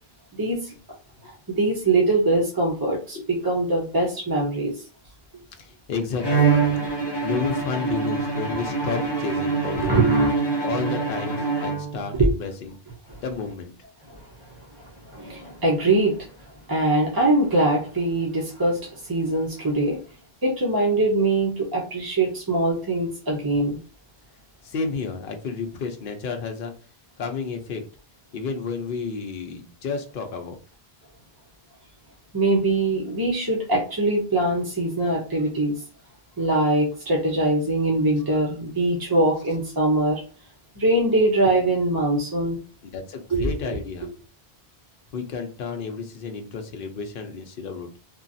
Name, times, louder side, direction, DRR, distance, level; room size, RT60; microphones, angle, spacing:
voice 1, 0.4-0.7 1.2-4.7 9.7-10.3 12.2-12.3 13.1-13.2 14.1-16.3 16.7-20.0 20.4-23.8 32.3-35.8 36.4-40.2 40.8-42.6 43.3-43.5 44.0-44.1, right 2 dB, 25° right, -3 dB, 0.6 m, -22 dB
voice 2, 5.6-6.7 7.2-10.0 10.6-12.8 13.2-13.7 24.6-26.7 27.2-27.8 28.3-30.6 42.8-44.1 45.1-48.0, left 5 dB, 65° left, 4 dB, 0.8 m, -31 dB
Bowed string instrument, 6.2-12.2, right 4 dB, 25° left, 0.8 m, -25 dB
2.9 x 2.4 x 2.6 m, 0.37 s
omnidirectional pair, 1.1 m